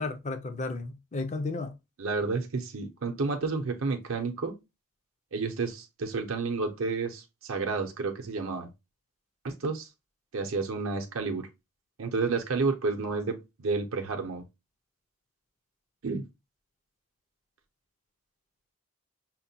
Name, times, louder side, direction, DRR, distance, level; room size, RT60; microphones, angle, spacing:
voice 1, 0.0-1.7, left 3 dB, 30° left, 0.5 m, -33 dB
voice 2, 2.0-4.5 5.3-8.7 9.4-9.9 10.3-11.5 12.0-14.4 16.0-16.2, right 4 dB, 65° right, 0.6 m, -30 dB
5.7 x 2.2 x 2.7 m
head